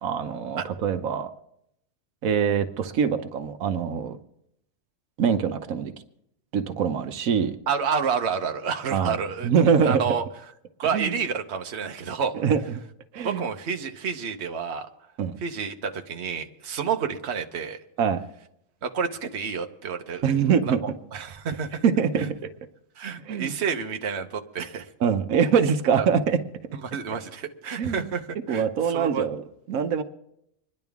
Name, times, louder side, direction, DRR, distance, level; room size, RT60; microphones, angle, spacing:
voice 1, 0.0-1.3 2.2-4.2 5.2-5.9 6.5-7.6 8.9-9.2 9.4-10.0 10.9-11.1 12.3-12.6 13.1-13.4 15.2-15.3 18.0-18.2 20.2-20.8 21.8-22.5 23.3-23.5 25.0-26.4 27.8-28.1 28.5-29.4 29.7-30.0, right 7 dB, 85° right, 8 dB, 1.2 m, -23 dB
voice 2, 7.7-9.5 9.8-10.2 10.8-12.4 13.2-14.9 15.4-17.8 18.8-20.2 20.6-21.8 22.2-22.3 23.0-24.9 26.0-26.1 26.7-28.6 28.9-29.2, right 6 dB, 55° right, 5 dB, 1.2 m, -29 dB
26.0 x 10.5 x 3.5 m, 0.79 s
omnidirectional pair, 1.4 m